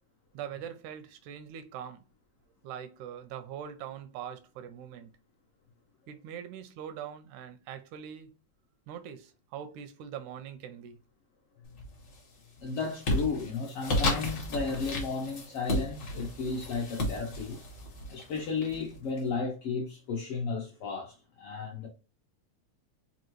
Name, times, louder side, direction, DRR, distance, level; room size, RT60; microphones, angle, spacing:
voice 1, 0.3-2.0 2.6-5.2 6.1-8.3 8.9-11.0, right 9 dB, 85° right, 2.0 m, -42 dB
sound 1, 11.7-12.2 12.6-19.2, left 1 dB, 55° left, 1.3 m, -33 dB
voice 2, 12.6-17.6 18.1-21.9, left 4 dB, 70° left, 1.4 m, -34 dB
5.1 x 2.4 x 3.0 m
omnidirectional pair, 3.4 m